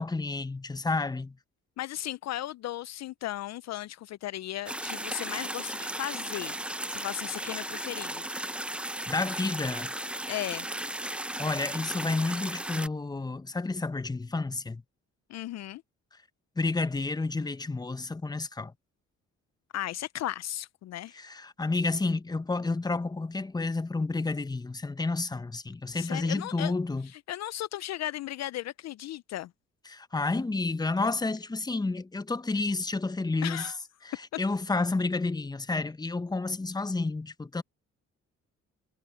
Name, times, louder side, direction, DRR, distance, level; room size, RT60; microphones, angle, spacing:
voice 1, 0.0-1.4 9.1-9.9 11.4-14.8 16.6-18.7 21.2-27.1 29.9-33.7 34.0-37.6, left 3 dB, 15° left, 0.8 m, -30 dB
voice 2, 1.8-6.6 6.9-8.2 10.3-10.7 15.3-15.8 19.7-21.2 25.9-26.7 27.0-29.5 33.4-33.8, left 14 dB, 60° left, 0.5 m, -36 dB
sound 1, 4.7-12.9, right 1 dB, 5° right, 0.5 m, -35 dB
cardioid pair, 90°, 30 cm